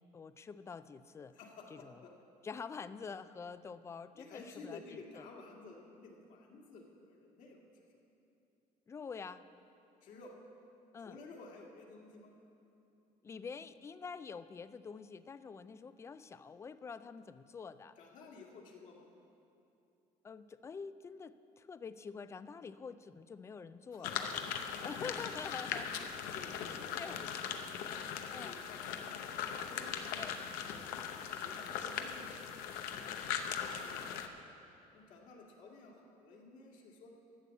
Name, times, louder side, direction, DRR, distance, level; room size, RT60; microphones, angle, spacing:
voice 1, 0.0-1.4 1.7-2.0 2.4-5.3 8.9-9.4 10.9-11.2 13.2-18.0 20.2-24.3 24.8-26.1 27.0-27.2 28.3-28.6 30.2-30.4, left 5 dB, 20° left, 13 dB, 0.3 m, -46 dB
voice 2, 1.3-2.1 4.1-7.9 10.0-10.3 11.0-12.3 18.0-19.1 22.9-23.0 23.9-24.3 25.7-25.8 26.3-28.0 28.4-29.4 29.7-30.3 30.6-34.5 34.9-37.1, left 3 dB, 60° left, -1 dB, 2.0 m, -54 dB
sound 1, 24.0-34.3, left 8 dB, 85° left, 0.8 m, -40 dB
12.5 x 6.9 x 8.2 m, 2.7 s
cardioid pair, 140°, 14 cm